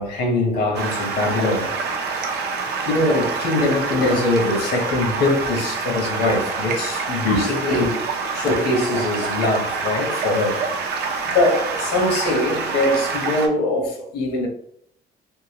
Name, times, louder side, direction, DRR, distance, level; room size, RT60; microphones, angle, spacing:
voice 1, 0.0-1.8 2.0-2.4 2.8-8.1 8.3-10.7 11.3-14.5, left 2 dB, 80° left, 1.0 m, -22 dB
Stream, 0.7-13.5, right 4 dB, 75° right, 0.6 m, -26 dB
3.6 x 2.5 x 2.9 m
cardioid pair, 110°, 17 cm